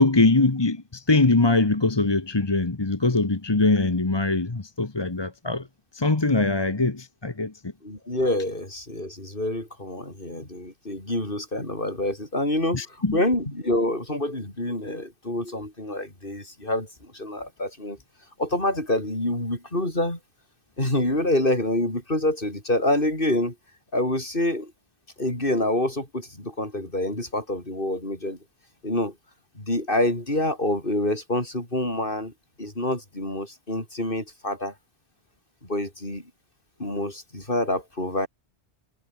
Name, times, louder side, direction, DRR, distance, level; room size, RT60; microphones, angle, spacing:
voice 1, 0.0-5.7 5.9-7.5 12.7-13.2, left 3 dB, 25° left, 1.2 m, -22 dB
voice 2, 7.8-12.8 13.1-18.0 18.4-20.2 20.8-23.5 23.9-24.7 25.2-28.4 28.8-29.1 29.5-32.3 32.6-34.7 35.6-36.2 36.8-38.3, left 1 dB, 50° left, 6.8 m, -27 dB
omnidirectional pair, 1.1 m